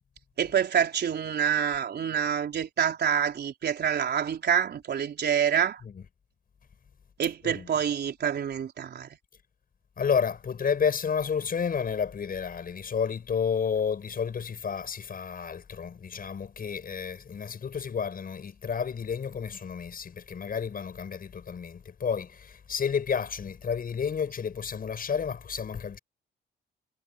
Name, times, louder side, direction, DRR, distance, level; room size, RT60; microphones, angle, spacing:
voice 1, 0.4-5.8 7.2-9.1, right 8 dB, 55° right, 4.2 m, -27 dB
voice 2, 10.0-26.0, left 6 dB, 45° left, 7.7 m, -31 dB
cardioid pair, 90°, 20 cm